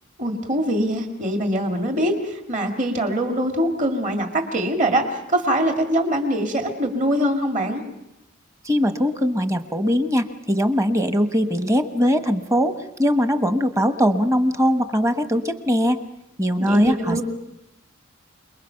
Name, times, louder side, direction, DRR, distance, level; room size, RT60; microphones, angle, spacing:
voice 1, 0.2-7.8 16.6-17.2, right 1 dB, 40° right, 3 dB, 2.2 m, -23 dB
voice 2, 8.6-16.0 16.4-17.2, equal, 15° right, 8 dB, 1.1 m, -21 dB
28.5 x 21.0 x 5.8 m, 0.91 s
head